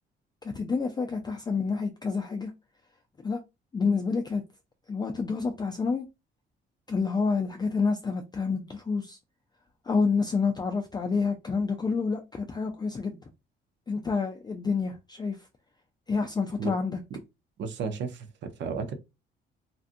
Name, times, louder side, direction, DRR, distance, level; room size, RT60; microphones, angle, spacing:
voice 1, 0.4-2.5 3.2-3.4 3.7-4.4 4.9-6.0 6.9-9.2 9.8-13.3 13.9-15.5 16.1-17.0, left 4 dB, 20° left, 0.3 m, -28 dB
voice 2, 17.6-18.9, right 5 dB, 65° right, 0.6 m, -33 dB
2.6 x 2.4 x 2.5 m
cardioid pair, 90°, 20 cm